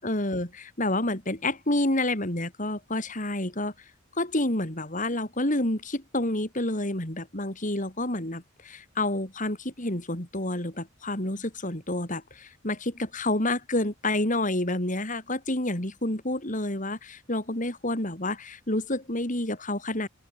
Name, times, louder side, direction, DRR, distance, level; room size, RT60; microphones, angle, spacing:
voice 1, 0.0-3.7 4.1-20.1, left 1 dB, 40° left, 4.3 m, -29 dB
open air
head